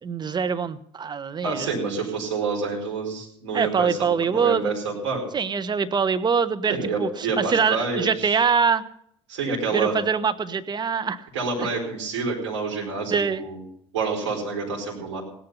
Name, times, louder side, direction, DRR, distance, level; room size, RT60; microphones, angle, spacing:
voice 1, 0.0-1.7 3.5-4.8 5.3-7.1 7.4-8.8 9.7-11.3 11.6-11.7 13.1-13.4, right 6 dB, 30° right, 10 dB, 1.1 m, -24 dB
voice 2, 1.4-5.2 6.7-8.4 9.3-9.9 11.3-13.6 13.9-15.2, right 4 dB, 75° right, -1 dB, 4.7 m, -28 dB
17.0 x 10.5 x 5.5 m, 0.69 s
hypercardioid pair, 65°, 15 cm